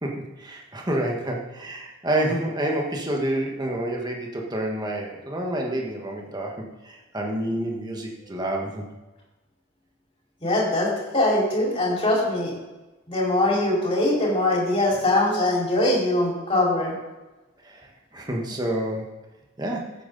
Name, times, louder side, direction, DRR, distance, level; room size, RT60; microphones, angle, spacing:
voice 1, 0.0-8.8 17.6-19.1 19.6-19.9, right 1 dB, 20° right, 0 dB, 1.6 m, -28 dB
voice 2, 10.4-12.5 13.1-16.9, left 1 dB, 25° left, -5 dB, 4.9 m, -22 dB
14.0 x 9.0 x 4.1 m, 1.1 s
head